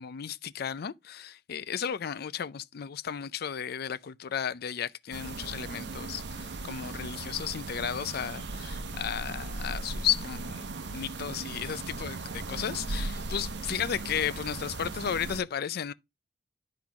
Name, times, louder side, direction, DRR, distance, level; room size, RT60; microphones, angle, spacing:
voice 1, 0.0-10.7 10.9-15.9, left 8 dB, 55° left, 0.4 m, -34 dB
sound 1, 5.1-15.4, right 3 dB, 65° right, 0.9 m, -37 dB
sound 2, 6.0-11.1, left 2 dB, 45° right, 3.4 m, -55 dB
10.5 x 3.9 x 4.7 m
head